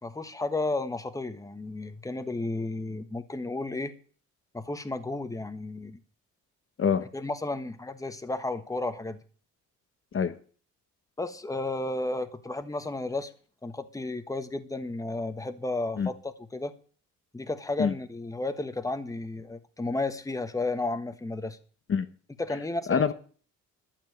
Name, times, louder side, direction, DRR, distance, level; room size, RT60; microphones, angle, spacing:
voice 1, 0.0-3.9 4.5-6.0 7.1-9.2 11.2-13.3 13.6-16.7 17.3-21.6 22.4-23.1, left 2 dB, 10° left, 1.3 m, -33 dB
voice 2, 6.8-7.0 10.1-10.4 16.0-16.1 17.8-17.9 21.9-22.1 22.9-23.1, left 6 dB, 45° left, 1.1 m, -25 dB
12.5 x 7.4 x 8.7 m
cardioid pair, 95°, 31 cm